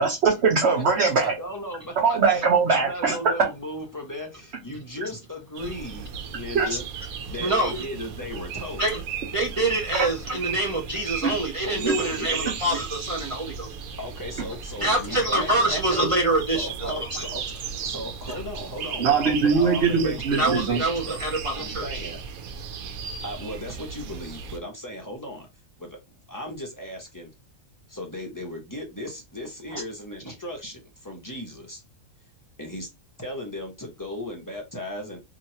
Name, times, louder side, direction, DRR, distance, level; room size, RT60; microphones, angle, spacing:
voice 1, 0.0-1.3 2.0-3.1 6.5-6.7 10.0-10.1 11.2-11.3 11.8-11.9 19.0-20.8 29.7-29.8, right 5 dB, 55° right, 1.0 m, -21 dB
voice 2, 0.7-1.9 2.3-2.4 2.7-6.8 7.3-8.9 11.6-12.5 14.0-15.8 16.5-17.4 17.8-22.2 23.2-25.5 25.8-26.0 26.3-27.3 27.9-31.8 32.6-32.9 33.2-35.2, left 1 dB, 20° left, 0.6 m, -36 dB
sound 1, 5.5-24.6, right 6 dB, 85° right, 1.1 m, -36 dB
voice 3, 7.3-7.8 8.8-9.0 9.3-13.7 14.8-17.3 18.3-18.4 20.4-21.9, right 1 dB, 35° right, 0.5 m, -25 dB
3.0 x 2.7 x 2.7 m
omnidirectional pair, 1.5 m